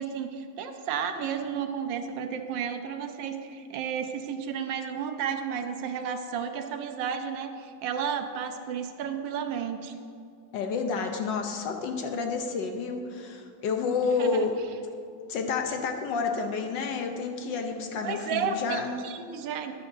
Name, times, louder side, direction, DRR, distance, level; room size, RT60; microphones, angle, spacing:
voice 1, 0.0-9.9 14.2-14.5 18.0-19.7, right 7 dB, 75° right, 7 dB, 1.3 m, -32 dB
voice 2, 10.5-14.5 15.3-18.9, left 5 dB, 70° left, 4 dB, 1.4 m, -30 dB
12.5 x 10.0 x 2.7 m, 2.3 s
omnidirectional pair, 2.1 m